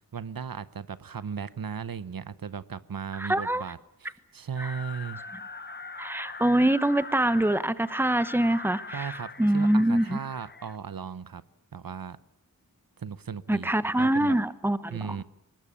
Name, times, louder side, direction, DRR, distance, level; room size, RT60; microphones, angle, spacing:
voice 1, 0.1-5.2 8.9-11.4 11.7-12.2 13.0-13.7 14.0-14.4 14.9-15.2, right 7 dB, 75° right, 0.8 m, -36 dB
voice 2, 3.1-3.6 4.6-4.7 6.0-9.1 9.4-10.2 13.5-15.0, right 1 dB, 5° right, 0.9 m, -24 dB
sound 1, 4.6-10.8, left 3 dB, 30° left, 0.9 m, -41 dB
22.5 x 19.5 x 8.6 m
wide cardioid pair, 70°, 35 cm